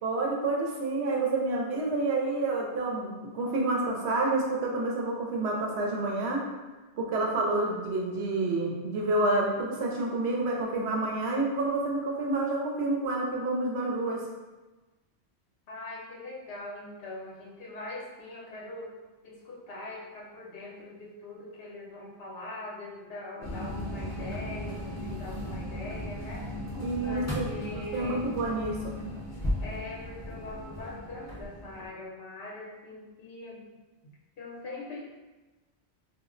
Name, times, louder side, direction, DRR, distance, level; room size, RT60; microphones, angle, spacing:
voice 1, 0.0-6.4 7.0-14.2 26.8-27.5 27.7-28.9, right 2 dB, 75° right, -1 dB, 0.9 m, -29 dB
voice 2, 15.7-19.0 19.2-26.5 27.0-28.3 29.6-33.6 34.4-35.0, left 2 dB, 65° left, -4 dB, 0.8 m, -42 dB
sound 1, 23.4-31.9, left 1 dB, 20° left, 0.6 m, -36 dB
2.3 x 2.1 x 3.7 m, 1.2 s
omnidirectional pair, 1.1 m